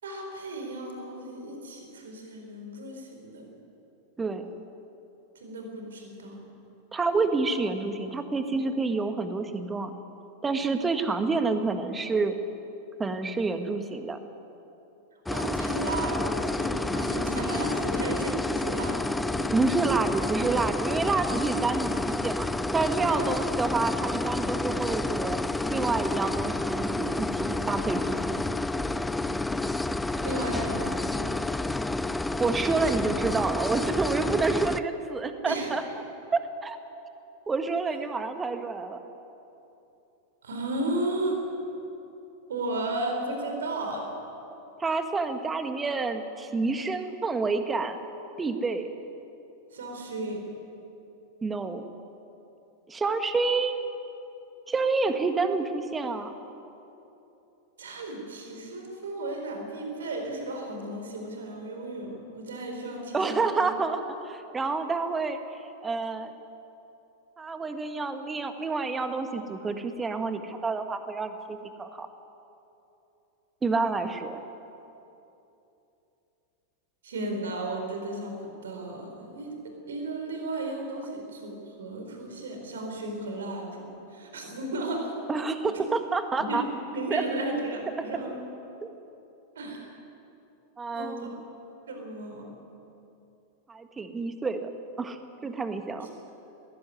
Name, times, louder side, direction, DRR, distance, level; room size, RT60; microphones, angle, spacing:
voice 1, 0.0-3.5 5.3-6.4 15.3-19.8 23.1-23.3 30.2-31.3 35.4-35.7 40.4-41.4 42.5-44.1 49.7-50.4 57.8-63.6 77.0-78.4 78.6-83.8 84.1-85.1 86.5-86.6 86.9-88.4 89.5-89.9 90.9-91.3 91.9-92.4, right 2 dB, 65° right, 2 dB, 4.4 m, -34 dB
voice 2, 6.9-9.9 10.4-12.3 13.0-14.2 19.5-22.5 22.7-25.4 25.7-28.5 32.4-35.8 36.3-36.8 37.5-39.0 44.8-48.0 48.4-48.9 51.4-51.8 52.9-53.8 54.7-56.3 63.1-66.3 67.4-72.1 73.6-74.4 85.3-86.6 87.1-87.2 88.8-88.9 90.8-91.4 93.7-94.7 95.0-96.1, right 4 dB, 15° right, 8 dB, 1.7 m, -28 dB
sound 1, 15.3-34.8, left 2 dB, 5° left, 0.6 m, -29 dB
20.5 x 16.0 x 9.7 m, 2.9 s
figure-of-eight pair, 90°, 0 cm